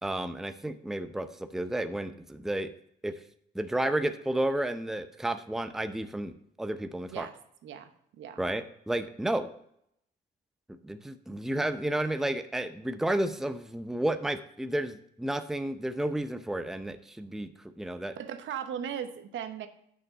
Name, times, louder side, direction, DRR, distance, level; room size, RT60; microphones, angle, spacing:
voice 1, 0.0-2.7 3.0-3.2 3.5-7.3 8.4-9.5 10.8-18.2, right 1 dB, ahead, 10 dB, 0.6 m, -32 dB
voice 2, 18.2-19.7, right 9 dB, 75° right, 9 dB, 0.9 m, -37 dB
8.6 x 6.1 x 5.4 m, 0.72 s
cardioid pair, 90°, 20 cm